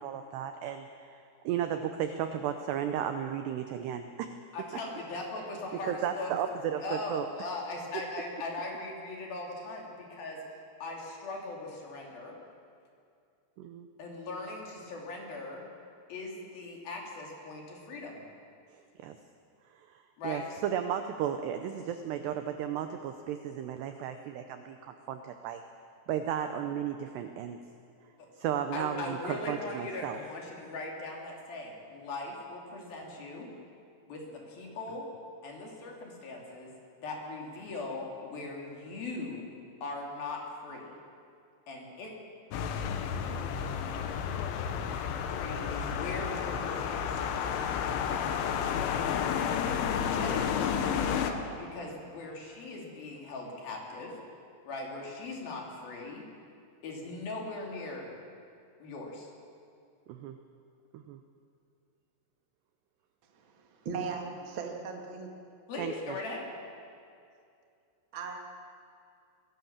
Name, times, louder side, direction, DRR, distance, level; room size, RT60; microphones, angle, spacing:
voice 1, 0.0-4.3 5.9-7.3 13.6-13.9 18.7-19.2 19.7-25.6 26.1-27.6 28.4-30.2 44.7-45.0 50.9-51.0 60.1-60.4 60.9-61.2 65.8-66.2, right 9 dB, 85° right, 8 dB, 2.4 m, -34 dB
voice 2, 4.5-6.3 6.8-10.4 10.8-12.4 14.0-15.7 16.1-18.2 20.2-20.4 28.2-28.3 28.7-33.5 34.1-35.0 35.4-36.7 37.0-39.5 39.8-40.9 41.7-42.1 45.3-47.1 50.2-54.2 54.6-56.2 56.8-58.1 58.8-59.3 65.7-66.5, left 2 dB, 50° left, -1 dB, 4.2 m, -39 dB
sound 1, 42.5-51.3, left 7 dB, 75° left, 3.4 m, -31 dB
voice 3, 63.3-65.3 68.1-68.4, right 5 dB, 55° right, 2 dB, 1.3 m, -38 dB
23.5 x 16.5 x 7.3 m, 2.4 s
omnidirectional pair, 5.9 m